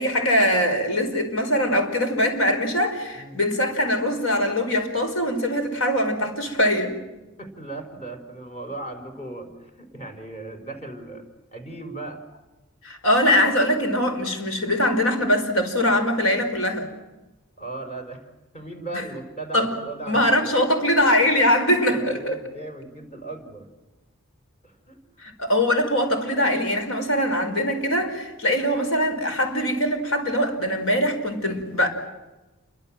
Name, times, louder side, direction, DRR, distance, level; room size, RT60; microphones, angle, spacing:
voice 1, 0.0-7.0 12.8-16.9 18.9-19.0 19.5-19.7 20.1-22.4 25.2-31.9, equal, 75° left, 6 dB, 5.3 m, -22 dB
voice 2, 7.4-11.3 11.5-12.2 15.8-16.0 17.6-18.3 18.5-20.5 21.9-23.7 24.6-25.0, right 2 dB, 30° left, 5 dB, 5.5 m, -37 dB
29.0 x 24.5 x 7.8 m, 1.1 s
head